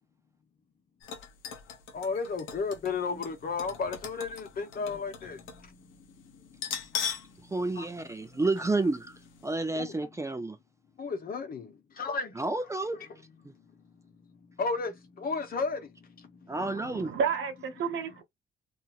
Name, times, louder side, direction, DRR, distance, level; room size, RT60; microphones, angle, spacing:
sound 1, 1.0-5.7 5.9-6.0 6.5-7.4 7.7-7.8 8.6-8.7 9.1-9.2, left 7 dB, 90° left, 0.8 m, -39 dB
voice 1, 1.9-5.4 7.7-7.9 9.8-9.9 11.0-11.7 12.0-12.3 14.6-14.9 15.2-15.8, left 4 dB, 50° left, 0.9 m, -32 dB
voice 2, 7.5-9.1 9.4-10.6 12.4-13.0 16.5-17.1, right 2 dB, 15° right, 0.5 m, -30 dB
voice 3, 16.6-18.2, right 6 dB, 75° right, 0.9 m, -32 dB
2.8 x 2.7 x 2.4 m
cardioid pair, 90°, 20 cm